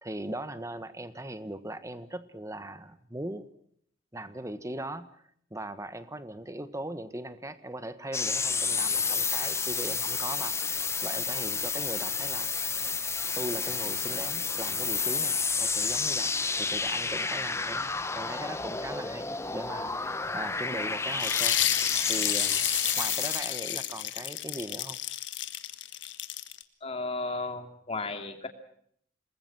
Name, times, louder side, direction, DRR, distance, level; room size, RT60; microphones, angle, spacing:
voice 1, 0.0-3.5 4.1-5.1 5.5-12.5 13.3-17.9 18.1-19.3 19.5-21.6 22.1-22.7 23.0-25.0, right 1 dB, 15° right, 12 dB, 1.4 m, -39 dB
sound 1, 8.1-23.4, left 4 dB, 15° left, 0.9 m, -30 dB
sound 2, 21.1-26.6, left 13 dB, 80° left, 1.5 m, -30 dB
voice 2, 26.8-28.5, left 3 dB, 35° left, 6 dB, 2.8 m, -34 dB
27.5 x 20.5 x 6.1 m, 0.65 s
head